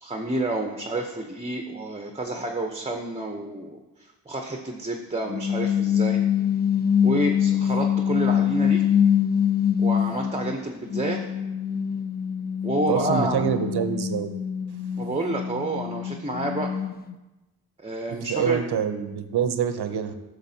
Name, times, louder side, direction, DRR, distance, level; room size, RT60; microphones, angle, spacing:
voice 1, 0.0-6.2 7.0-8.8 9.8-11.3 12.6-13.4 15.0-16.7 17.8-18.6, right 1 dB, 15° right, 3 dB, 0.7 m, -29 dB
sound 1, 5.3-10.5 10.9-17.1, left 8 dB, 25° left, 0.4 m, -24 dB
voice 2, 12.9-14.3 18.1-20.1, right 8 dB, 75° right, 10 dB, 0.6 m, -26 dB
9.8 x 6.4 x 2.7 m, 1.1 s
cardioid pair, 60°, 40 cm